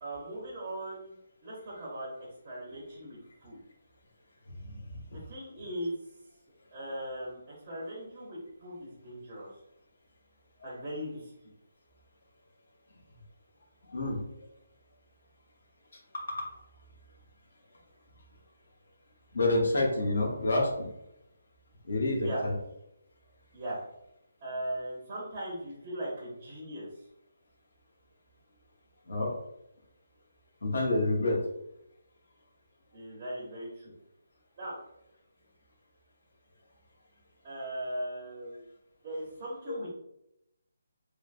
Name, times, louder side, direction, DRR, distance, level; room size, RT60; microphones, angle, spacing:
voice 1, 0.0-1.2 1.4-2.1 2.4-3.6 5.1-6.0 6.7-9.5 10.6-11.3 22.2-22.4 23.5-23.8 24.4-26.9 32.9-33.9 34.6-34.8 37.4-38.6 39.0-39.9, right 1 dB, 25° right, -6 dB, 0.6 m, -39 dB
voice 2, 4.6-5.2 10.6-10.8 13.9-14.4 16.1-16.5 19.3-20.9 21.8-22.5 29.1-29.3 30.6-31.4, left 2 dB, 60° left, -2 dB, 0.9 m, -29 dB
3.2 x 2.0 x 2.4 m, 0.82 s
hypercardioid pair, 175°, 0 cm